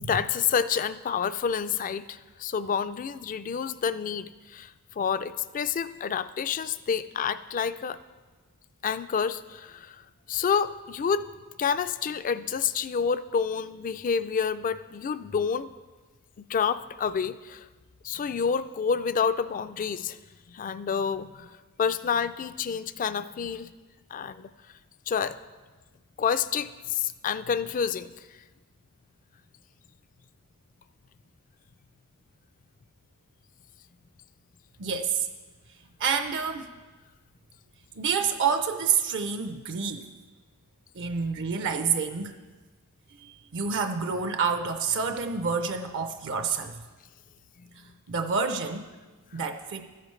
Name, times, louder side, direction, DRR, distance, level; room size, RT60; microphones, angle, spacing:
voice 1, 0.0-8.0 8.8-10.0 10.3-11.2 11.6-15.7 16.5-17.7 18.0-20.2 20.5-21.5 21.8-23.7 24.1-24.5 25.1-25.4 26.2-28.1, left 6 dB, 35° left, 13 dB, 0.3 m, -28 dB
voice 2, 34.8-35.3 36.0-36.7 38.0-40.1 40.9-42.3 43.2-46.8 48.1-48.9 49.3-49.9, right 5 dB, 55° right, 7 dB, 0.6 m, -28 dB
13.5 x 10.0 x 3.2 m, 1.3 s
head